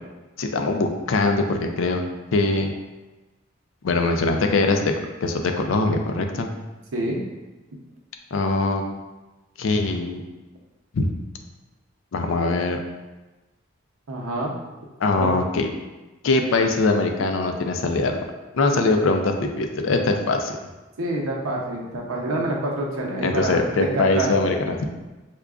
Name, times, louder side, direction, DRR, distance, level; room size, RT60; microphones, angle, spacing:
voice 1, 0.4-2.0 2.3-2.7 3.8-4.8 5.2-6.5 8.3-8.8 9.6-10.2 10.9-11.1 12.1-12.8 15.0-15.7 16.2-18.2 18.5-20.6 23.2-24.9, left 3 dB, 70° left, 5 dB, 0.4 m, -22 dB
voice 2, 6.9-7.2 14.1-14.5 15.2-15.3 21.0-24.3, right 1 dB, 85° right, -1 dB, 0.7 m, -27 dB
4.9 x 2.3 x 2.3 m, 1.1 s
head